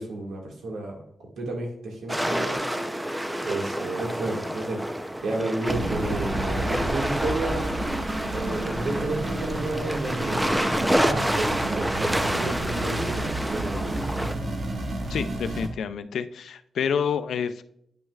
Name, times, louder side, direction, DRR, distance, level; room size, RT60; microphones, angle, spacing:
voice 1, 0.0-2.6 3.4-4.8 5.2-7.7 8.3-14.0, right 2 dB, 85° right, 0 dB, 1.9 m, -31 dB
sound 1, 2.1-14.3, equal, 10° right, 0.6 m, -28 dB
sound 2, 5.7-15.7, right 2 dB, 55° right, 1.4 m, -31 dB
voice 2, 15.1-17.6, left 7 dB, 85° left, 12 dB, 0.4 m, -28 dB
9.9 x 6.2 x 2.4 m, 0.73 s
cardioid pair, 70°, 0 cm